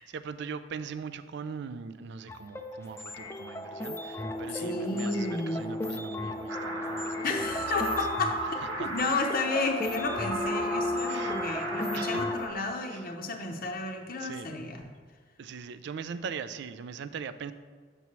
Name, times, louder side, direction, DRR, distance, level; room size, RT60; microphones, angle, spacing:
voice 1, 0.0-8.0 8.4-9.1 11.1-11.4 11.9-12.2 12.9-13.2 14.2-14.5 15.4-17.5, right 6 dB, 60° right, 12 dB, 0.3 m, -41 dB
sound 1, 2.3-12.5, left 2 dB, 15° left, 0.4 m, -35 dB
voice 2, 4.6-5.6 7.2-8.4 8.8-14.8, left 3 dB, 50° left, 3 dB, 0.6 m, -32 dB
sound 2, 6.5-12.5, right 1 dB, 85° right, 1.2 m, -35 dB
7.1 x 6.8 x 3.1 m, 1.5 s
head